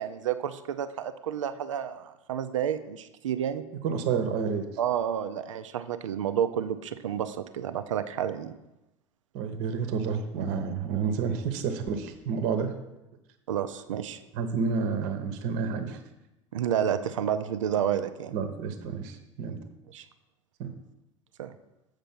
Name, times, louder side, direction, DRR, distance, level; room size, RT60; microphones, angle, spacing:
voice 1, 0.0-3.6 4.8-8.5 13.5-14.2 16.5-18.3 19.9-20.1 21.4-21.5, right 9 dB, 75° right, 11 dB, 0.5 m, -30 dB
voice 2, 3.8-4.6 9.3-12.7 14.3-16.0 18.3-19.6 20.6-20.7, right 6 dB, 55° right, 7 dB, 0.9 m, -29 dB
7.3 x 5.1 x 5.9 m, 0.95 s
figure-of-eight pair, 70°, 16 cm